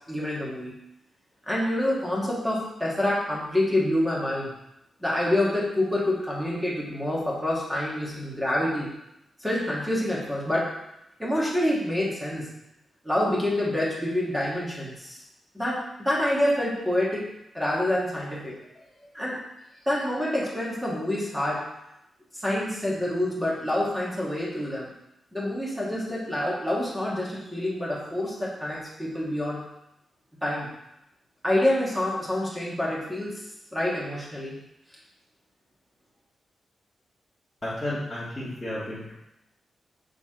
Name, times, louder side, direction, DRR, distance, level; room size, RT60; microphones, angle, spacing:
voice 1, 0.1-0.7 1.5-4.5 5.0-8.9 9.4-10.7 11.2-12.5 13.0-15.2 15.5-17.3 17.5-18.5 19.1-19.4 19.9-21.6 22.3-24.9 25.3-29.6 30.4-30.7 31.4-33.4 33.7-34.6, left 1 dB, 5° right, -5 dB, 1.8 m, -27 dB
voice 2, 37.6-39.1, left 1 dB, 10° left, -12 dB, 1.7 m, -33 dB
6.4 x 3.9 x 3.8 m, 0.86 s
wide cardioid pair, 130°, 0 cm